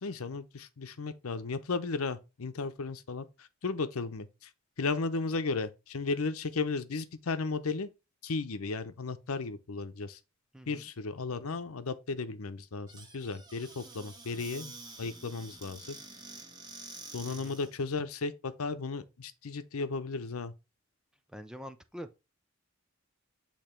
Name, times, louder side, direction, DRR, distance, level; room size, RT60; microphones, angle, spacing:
voice 1, 0.0-3.3 3.6-4.3 4.8-7.9 8.2-10.2 10.7-14.7 15.0-16.0 17.1-20.5, left 4 dB, 90° left, 0.7 m, -35 dB
voice 2, 10.5-10.9 17.3-17.6 21.3-22.1, equal, 5° right, 0.4 m, -45 dB
Squeak / Cupboard open or close, 12.9-17.7, right 3 dB, 20° right, 1.4 m, -48 dB
8.7 x 3.0 x 4.4 m
head